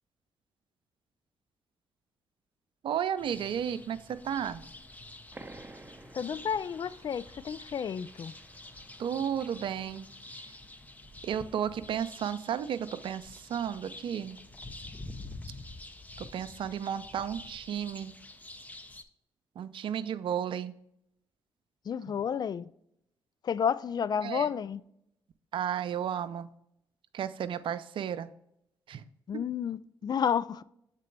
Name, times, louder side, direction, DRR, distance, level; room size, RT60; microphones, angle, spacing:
voice 1, 2.8-4.6 9.0-10.1 10.3-10.5 11.2-14.4 16.2-18.1 19.6-20.7 24.2-24.5 25.5-26.5 27.1-28.3 28.9-29.0, right 9 dB, 65° right, 0.4 m, -33 dB
sound 1, 3.2-19.0, left 2 dB, 15° left, 0.7 m, -48 dB
sound 2, 5.3-10.6, right 2 dB, 20° right, 0.6 m, -53 dB
voice 2, 6.1-8.3 21.9-22.7 23.4-24.8 29.3-30.6, left 7 dB, 45° left, 0.3 m, -31 dB
7.4 x 3.8 x 3.3 m
supercardioid pair, 50°, 9 cm